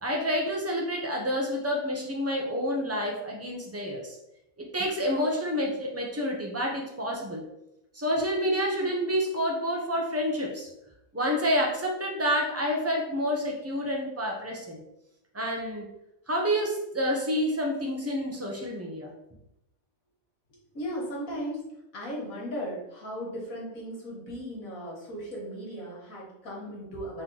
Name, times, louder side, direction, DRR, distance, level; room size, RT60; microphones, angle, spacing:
voice 1, 0.0-4.2 4.6-7.4 7.9-10.7 11.1-14.8 15.3-15.9 16.3-19.1, equal, 20° right, -1 dB, 0.5 m, -28 dB
voice 2, 20.7-21.6 21.9-27.2, equal, 75° left, -4 dB, 1.9 m, -36 dB
4.3 x 3.0 x 3.9 m, 0.85 s
omnidirectional pair, 1.4 m